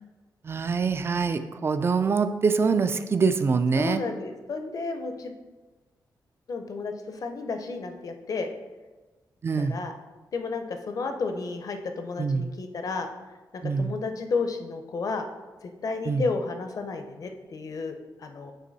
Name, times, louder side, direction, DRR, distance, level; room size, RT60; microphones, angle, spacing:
voice 1, 0.4-4.0 9.4-9.8 12.2-12.5 13.6-13.9 16.1-16.3, right 5 dB, 35° right, 10 dB, 0.4 m, -24 dB
voice 2, 3.8-5.3 6.5-8.5 9.6-9.9 10.3-13.1 13.8-15.2 15.6-18.5, left 4 dB, 50° left, 6 dB, 0.6 m, -32 dB
8.2 x 3.0 x 4.0 m, 1.2 s
wide cardioid pair, 125°, 8 cm